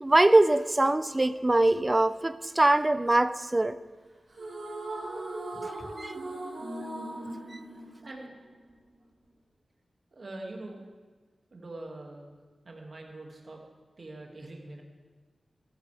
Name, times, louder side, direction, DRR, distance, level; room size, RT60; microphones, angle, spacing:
voice 1, 0.0-3.8 5.6-5.7 6.0-6.2 7.5-7.6, right 2 dB, 20° right, 13 dB, 0.5 m, -23 dB
sound 1, 4.3-8.7, right 2 dB, 85° right, 4.2 m, -38 dB
voice 2, 8.0-8.4 10.1-10.8 11.5-12.3 12.6-13.6 14.0-14.8, right 2 dB, 50° right, 0 dB, 2.1 m, -43 dB
15.0 x 13.0 x 3.4 m, 1.4 s
wide cardioid pair, 95°, 0 cm